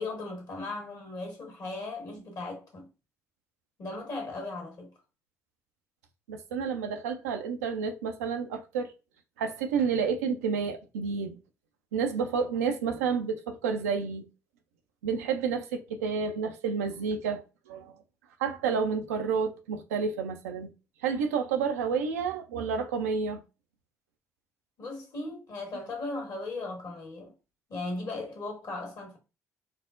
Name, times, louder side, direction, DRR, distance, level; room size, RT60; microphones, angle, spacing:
voice 1, 0.0-2.9 3.8-4.9 24.8-27.3 27.7-29.2, left 2 dB, 50° left, 1.4 m, -37 dB
voice 2, 6.3-8.9 9.4-11.4 11.9-14.3 15.0-17.9 18.4-20.7 21.0-23.4, right 6 dB, 80° right, 0.4 m, -30 dB
4.4 x 2.0 x 2.4 m
figure-of-eight pair, 45°, 8 cm